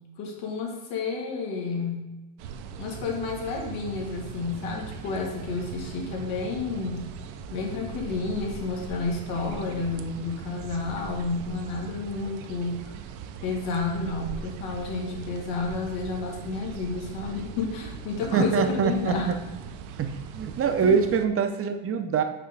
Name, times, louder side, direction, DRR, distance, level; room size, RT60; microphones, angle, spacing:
voice 1, 0.2-2.1 2.8-7.0 7.5-12.8 13.4-19.3 20.8-20.9, left 4 dB, 85° left, 0 dB, 1.8 m, -31 dB
sound 1, 2.4-21.3, right 7 dB, 75° right, 0.7 m, -40 dB
voice 2, 18.3-19.4 20.0-20.1 20.3-22.2, right 6 dB, 30° right, 7 dB, 0.6 m, -24 dB
5.7 x 3.7 x 5.1 m, 1.1 s
supercardioid pair, 110°, 50 cm